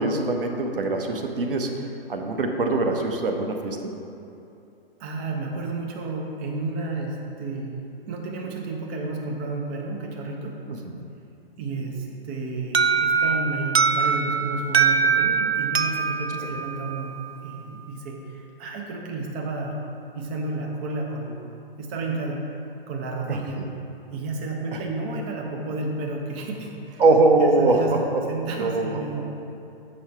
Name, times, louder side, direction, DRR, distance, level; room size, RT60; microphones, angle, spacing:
voice 1, 0.0-3.9 10.7-10.9 23.3-23.6 24.7-24.8 27.0-28.2 28.6-29.0, right 2 dB, 65° right, 3 dB, 1.0 m, -23 dB
voice 2, 5.0-10.6 11.6-17.2 17.4-19.8 20.1-21.5 21.8-22.4 22.9-23.7 24.1-27.0 27.4-29.3, right 3 dB, 10° right, 1 dB, 0.4 m, -31 dB
Alarm, 12.7-17.5, right 6 dB, 85° right, 0.5 m, -23 dB
8.0 x 5.6 x 4.5 m, 2.7 s
figure-of-eight pair, 120°, 30 cm